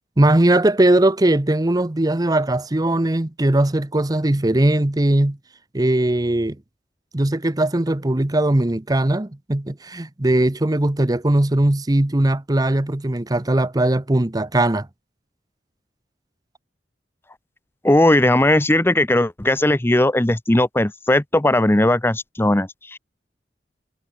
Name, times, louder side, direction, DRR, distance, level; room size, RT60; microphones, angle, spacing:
voice 1, 0.2-5.4 5.7-6.6 7.1-14.9, right 1 dB, 20° right, 0.8 m, -19 dB
voice 2, 17.8-23.0, left 1 dB, 15° left, 0.8 m, -18 dB
head